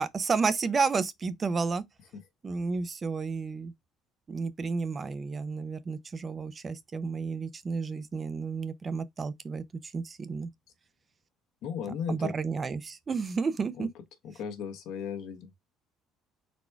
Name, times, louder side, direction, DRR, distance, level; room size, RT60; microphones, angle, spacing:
voice 1, 0.0-1.8 2.4-3.7 4.3-10.5 12.1-13.9, right 4 dB, 30° right, 0.5 m, -31 dB
voice 2, 11.6-12.3 13.8-13.9 14.2-15.5, left 7 dB, 70° left, 1.2 m, -36 dB
4.2 x 2.2 x 4.4 m
cardioid pair, 100°, 0 cm